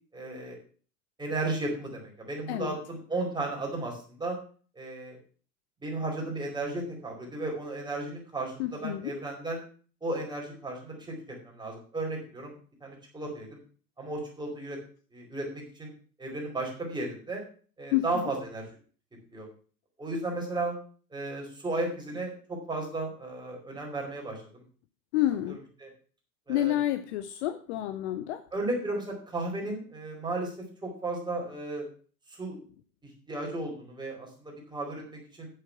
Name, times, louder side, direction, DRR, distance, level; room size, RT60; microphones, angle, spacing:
voice 1, 0.1-0.6 1.2-4.4 4.8-5.2 5.8-9.6 10.0-11.1 11.4-12.5 12.8-13.6 14.0-14.8 15.1-15.9 16.2-17.4 17.8-18.6 19.3-19.5 20.0-20.7 21.1-24.4 25.8-25.9 26.5-26.8 28.5-30.5 30.8-31.9 32.4-32.6 33.3-35.5, right 2 dB, 10° right, -1 dB, 4.7 m, -34 dB
voice 2, 8.6-9.1 17.9-18.3 25.1-25.6 26.5-28.4, left 13 dB, 45° left, 11 dB, 0.8 m, -29 dB
9.3 x 7.6 x 5.9 m, 0.42 s
figure-of-eight pair, 95°, 49 cm